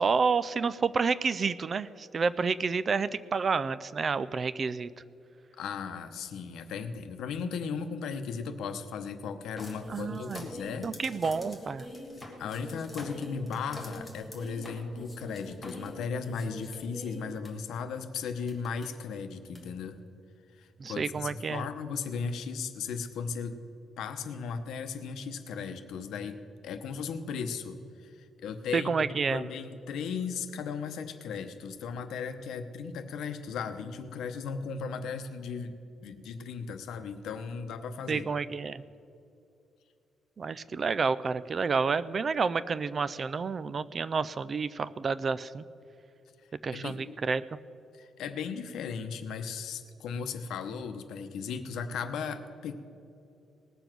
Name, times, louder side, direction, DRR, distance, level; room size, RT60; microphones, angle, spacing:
voice 1, 0.0-4.9 9.9-10.5 10.8-11.9 20.8-21.7 28.7-29.4 38.1-38.8 40.4-45.6 46.6-47.4, right 5 dB, 30° right, 16 dB, 0.3 m, -29 dB
voice 2, 5.6-10.9 12.4-20.0 20.6-23.6 24.0-26.4 26.6-38.3 46.7-47.1 47.9-52.7, left 5 dB, 80° left, 9 dB, 0.9 m, -36 dB
sound 1, 9.6-17.5 18.2-18.3 18.5-18.8 19.5-19.6, left 1 dB, 5° left, 1.8 m, -44 dB
19.0 x 7.0 x 6.0 m, 2.7 s
cardioid pair, 175°, 0 cm